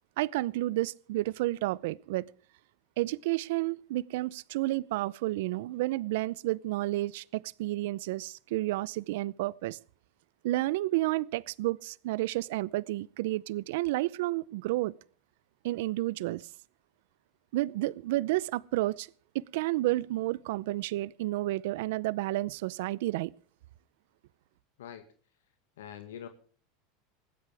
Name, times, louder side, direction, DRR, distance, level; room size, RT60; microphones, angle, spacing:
voice 1, 0.2-2.2 3.0-9.8 10.4-14.9 15.6-16.5 17.5-19.1 19.3-23.3, right 17 dB, 75° right, 0.6 m, -31 dB
voice 2, 25.8-26.3, left 9 dB, 90° left, 1.8 m, -43 dB
20.5 x 16.0 x 3.5 m
supercardioid pair, 115°, 0 cm